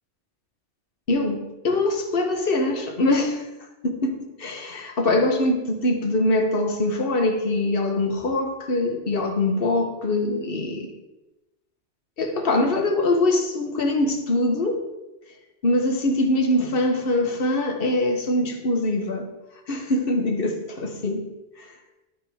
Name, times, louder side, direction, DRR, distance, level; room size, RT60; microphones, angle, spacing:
voice 1, 1.1-3.4 3.8-10.9 12.2-14.8 15.6-19.3 19.7-21.3, left 2 dB, 55° left, 4 dB, 1.2 m, -23 dB
12.5 x 5.3 x 3.5 m, 1.0 s
omnidirectional pair, 1.2 m